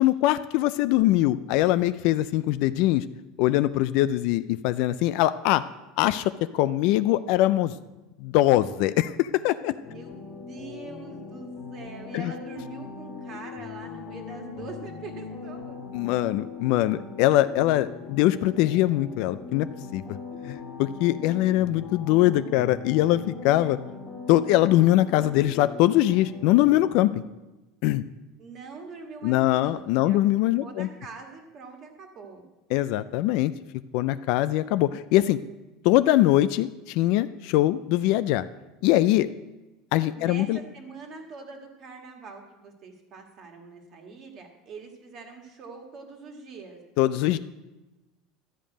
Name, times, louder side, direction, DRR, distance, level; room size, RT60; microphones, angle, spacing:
voice 1, 0.0-3.0 3.4-5.6 6.0-7.7 8.2-9.7 12.1-12.3 15.9-19.7 19.9-20.0 20.4-23.8 24.3-27.2 27.8-28.0 29.2-30.9 32.7-33.5 33.9-35.4 35.8-38.5 38.8-39.3 39.9-40.6 47.0-47.4, left 15 dB, 50° left, 14 dB, 0.3 m, -22 dB
sound 1, 9.8-27.0, left 5 dB, 35° left, 1.3 m, -40 dB
voice 2, 9.8-15.9 28.4-30.2 30.6-32.4 40.1-46.8, right 4 dB, 30° right, 3 dB, 1.6 m, -43 dB
12.5 x 5.2 x 8.7 m, 1.1 s
cardioid pair, 180°, 0 cm